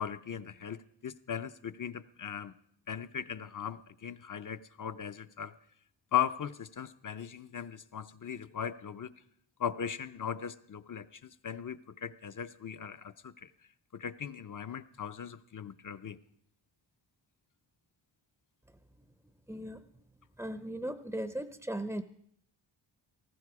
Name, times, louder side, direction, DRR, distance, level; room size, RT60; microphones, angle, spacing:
voice 1, 0.0-2.5 2.9-5.5 6.1-9.1 9.6-13.5 13.9-16.2, left 8 dB, 45° left, 10 dB, 0.6 m, -38 dB
voice 2, 19.5-19.8 20.4-22.0, right 1 dB, 5° right, 11 dB, 0.6 m, -37 dB
18.5 x 15.0 x 4.8 m, 0.68 s
wide cardioid pair, 115°, 46 cm